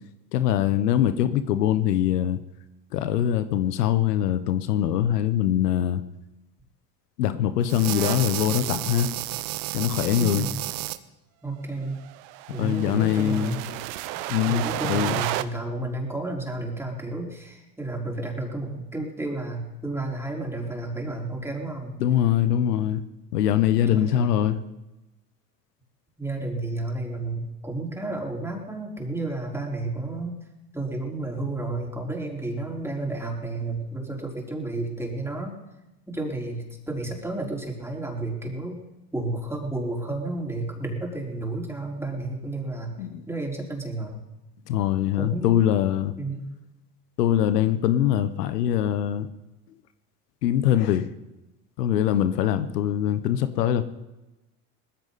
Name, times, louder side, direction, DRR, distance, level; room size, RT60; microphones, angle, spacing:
voice 1, 0.3-2.4 2.9-6.0 7.2-9.1 9.7-10.5 12.5-13.6 14.3-15.2 22.0-23.0 23.3-24.6 43.0-43.2 44.7-46.1 47.2-49.3 50.4-51.1 51.8-53.8, left 11 dB, 85° left, 11 dB, 1.0 m, -23 dB
sound 1, 7.7-11.0 12.1-15.4, right 16 dB, 65° right, 1.0 m, -31 dB
voice 2, 10.1-10.5 11.4-12.0 12.5-13.5 14.5-21.9 23.9-24.5 26.2-30.4 30.7-35.5 36.1-38.8 39.1-42.9 43.3-44.2 45.2-45.6 46.2-46.5, right 2 dB, 5° right, -1 dB, 4.5 m, -31 dB
19.5 x 15.0 x 4.1 m, 1.0 s
hypercardioid pair, 85°, 46 cm